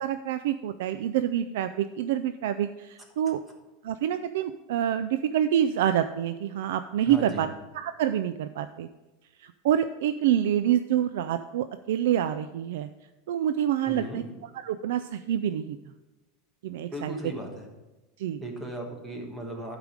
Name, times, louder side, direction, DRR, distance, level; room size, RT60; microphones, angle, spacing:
voice 1, 0.0-3.4 3.8-7.5 7.7-8.9 9.4-12.9 13.3-14.2 14.5-15.8 16.6-17.1 18.2-18.4, right 10 dB, 75° right, 11 dB, 0.4 m, -27 dB
voice 2, 7.1-7.4 13.9-14.2 16.9-17.7 18.4-19.8, right 1 dB, 10° right, 2 dB, 1.2 m, -36 dB
11.5 x 4.9 x 5.1 m, 1.1 s
supercardioid pair, 175°, 0 cm